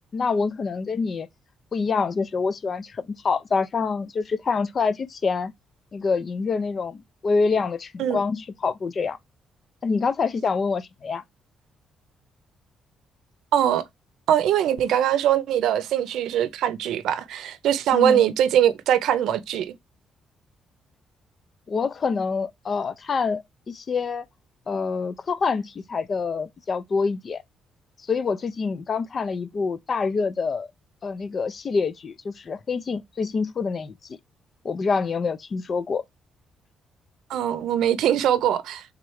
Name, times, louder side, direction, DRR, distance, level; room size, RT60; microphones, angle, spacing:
voice 1, 0.1-1.3 1.7-5.5 5.9-9.2 9.8-11.2 17.9-18.2 21.7-24.3 24.7-27.4 28.1-30.7 31.0-33.9 34.6-36.0, left 4 dB, 45° left, 0.5 m, -26 dB
voice 2, 13.5-13.8 14.3-19.8 37.3-38.8, right 10 dB, 80° right, 0.6 m, -22 dB
3.7 x 3.1 x 4.6 m
cardioid pair, 90°, 0 cm